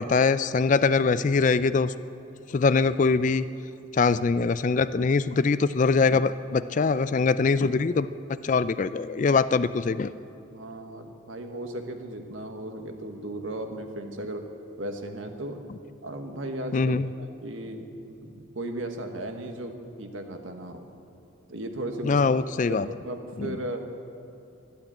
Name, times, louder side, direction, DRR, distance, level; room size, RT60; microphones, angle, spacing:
voice 1, 0.0-1.9 2.5-3.5 3.9-10.1 16.7-17.1 22.0-22.9 23.4-23.6, left 4 dB, 40° left, 15 dB, 0.3 m, -23 dB
voice 2, 10.5-14.4 14.8-15.6 16.0-20.9 21.5-22.2 22.7-22.8 23.0-23.8, right 1 dB, 75° right, 5 dB, 1.4 m, -36 dB
12.0 x 12.0 x 8.6 m, 2.7 s
head